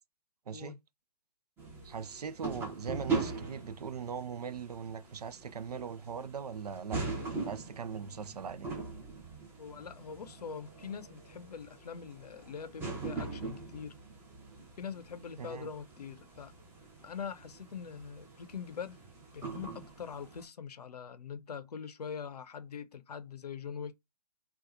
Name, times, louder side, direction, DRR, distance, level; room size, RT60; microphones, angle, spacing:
sound 1, 1.6-20.4, right 4 dB, 10° right, 0.9 m, -42 dB
voice 1, 1.8-8.7 15.4-15.7, right 6 dB, 70° right, 0.5 m, -40 dB
voice 2, 9.6-13.9 14.8-16.5 17.0-19.0 19.3-23.9, left 6 dB, 70° left, 0.6 m, -43 dB
3.9 x 2.3 x 2.7 m
figure-of-eight pair, 135°, 21 cm